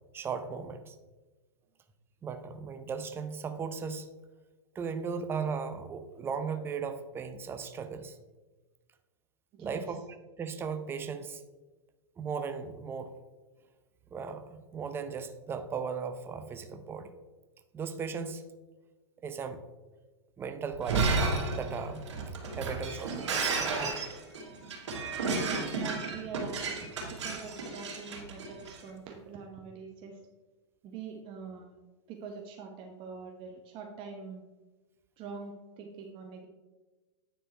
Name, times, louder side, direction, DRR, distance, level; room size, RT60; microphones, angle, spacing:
voice 1, 0.1-1.0 2.2-4.1 4.7-8.2 9.6-10.0 10.4-11.4 12.2-13.1 14.1-17.1 17.7-18.4 19.2-19.6 20.4-21.2 21.5-22.1 22.6-24.0, right 5 dB, 15° right, 8 dB, 0.6 m, -37 dB
voice 2, 9.5-10.0 25.4-30.2 30.8-31.7 32.1-34.4 35.2-36.5, right 5 dB, 35° right, 2 dB, 0.9 m, -44 dB
Shatter, 20.7-28.8, right 3 dB, 85° right, 2.8 m, -32 dB
9.6 x 4.4 x 4.4 m, 1.2 s
hypercardioid pair, 130°, 15 cm